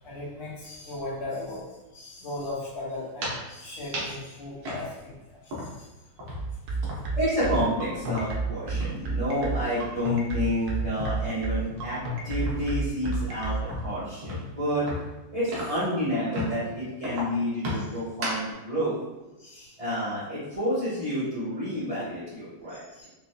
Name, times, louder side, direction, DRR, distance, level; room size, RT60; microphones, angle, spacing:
voice 1, 0.0-1.6 1.9-5.1 5.4-5.9 17.7-17.8 19.4-19.8 22.9-23.1, left 2 dB, 70° left, -7 dB, 2.1 m, -37 dB
sound 1, 3.2-3.5 3.9-4.2 4.6-5.9 6.2-9.1 9.3-9.6 10.0-11.3 11.7-15.9 16.3-16.7 17.0-18.5, left 1 dB, 65° right, 1.5 m, -35 dB
sound 2, 6.4-13.6, right 3 dB, 80° right, 1.6 m, -29 dB
voice 2, 7.2-14.8 15.3-19.0 19.8-23.1, equal, 25° right, -13 dB, 0.9 m, -29 dB
5.2 x 2.4 x 2.2 m, 1.0 s
omnidirectional pair, 2.4 m